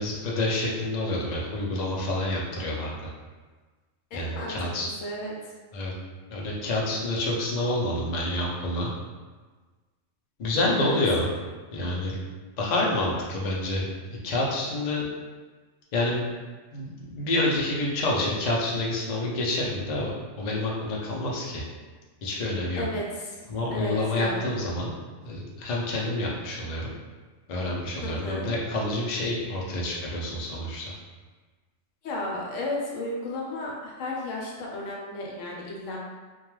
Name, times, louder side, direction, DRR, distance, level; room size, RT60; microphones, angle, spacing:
voice 1, 0.0-3.1 4.1-4.9 5.7-5.9 6.3-8.9 10.4-11.3 11.7-12.1 12.6-15.1 15.9-16.2 16.7-20.1 20.4-21.6 22.2-22.8 23.5-24.9 25.2-26.9 27.5-30.9, left 1 dB, 60° left, -3 dB, 0.4 m, -28 dB
voice 2, 4.1-5.3 10.5-11.0 22.8-23.4 23.7-24.4 28.0-28.4 32.0-36.0, left 1 dB, 80° left, -3 dB, 1.0 m, -33 dB
2.3 x 2.2 x 3.0 m, 1.3 s
omnidirectional pair, 1.3 m